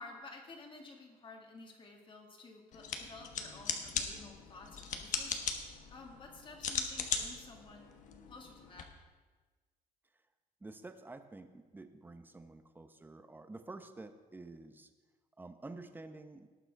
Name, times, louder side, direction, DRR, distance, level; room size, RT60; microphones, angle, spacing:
voice 1, 0.0-5.6 5.9-8.0 8.3-8.9, left 3 dB, 30° left, 1 dB, 2.0 m, -52 dB
sound 1, 2.7-8.8, left 6 dB, 55° left, 1.3 m, -39 dB
voice 2, 3.9-4.3 10.6-14.9 15.4-16.5, right 2 dB, 10° right, 8 dB, 0.8 m, -50 dB
18.5 x 6.1 x 4.7 m, 1.4 s
cardioid pair, 130°, 16 cm